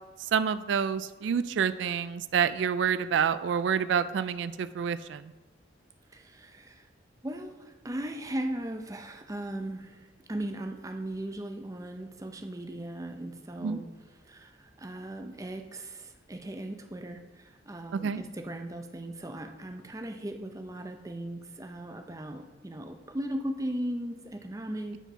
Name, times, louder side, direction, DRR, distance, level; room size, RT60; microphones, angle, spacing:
voice 1, 0.3-5.3 13.6-13.8 17.9-18.2, right 7 dB, 75° right, 14 dB, 0.3 m, -28 dB
voice 2, 6.1-6.9 7.2-13.9 14.2-25.0, right 1 dB, 15° right, 5 dB, 0.6 m, -38 dB
9.0 x 4.5 x 5.6 m, 1.2 s
head